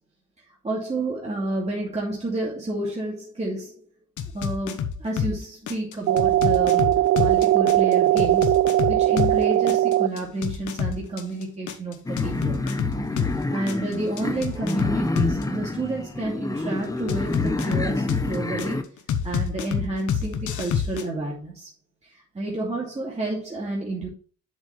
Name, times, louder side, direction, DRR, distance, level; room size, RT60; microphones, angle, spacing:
voice 1, 0.6-3.8 4.3-8.6 8.9-12.6 13.5-18.9 19.2-21.7 22.1-24.1, right 2 dB, 20° right, 2.5 m, -30 dB
sound 1, 4.2-5.4 5.7-9.4 9.7-13.4 13.7-15.4 17.1-18.7 19.1-21.0, left 7 dB, 75° left, 1.2 m, -27 dB
sound 2, 6.1-10.1, right 13 dB, 55° right, 0.4 m, -19 dB
sound 3, 12.1-18.8, left 2 dB, 10° left, 1.1 m, -28 dB
7.4 x 7.3 x 3.3 m
cardioid pair, 90°, 30 cm